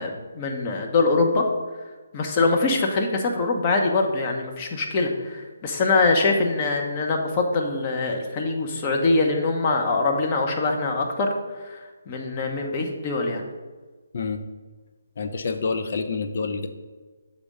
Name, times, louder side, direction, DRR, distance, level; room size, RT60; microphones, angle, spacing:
voice 1, 0.0-1.5 2.1-11.3 11.7-11.8 12.1-13.4, left 3 dB, 30° left, 2 dB, 1.0 m, -23 dB
voice 2, 15.2-16.7, left 4 dB, 50° left, 7 dB, 0.6 m, -27 dB
6.7 x 3.6 x 5.2 m, 1.3 s
figure-of-eight pair, 145°, 0 cm